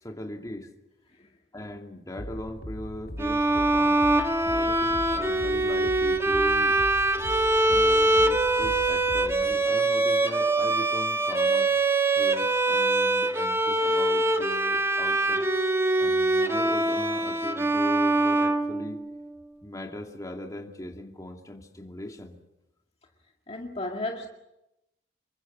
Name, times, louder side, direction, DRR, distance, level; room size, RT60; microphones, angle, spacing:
voice 1, 0.0-0.7 1.5-4.0 4.4-6.8 7.7-11.7 12.1-15.4 16.0-19.0 19.6-22.4, left 1 dB, 20° left, 2 dB, 2.5 m, -39 dB
sound 1, 2.2-9.5, equal, 80° left, 2.7 m, -40 dB
Bowed string instrument, 3.2-19.2, right 2 dB, 15° right, 1.7 m, -24 dB
voice 2, 23.5-24.3, left 2 dB, 35° left, 1 dB, 2.1 m, -33 dB
27.5 x 23.5 x 6.2 m, 0.92 s
head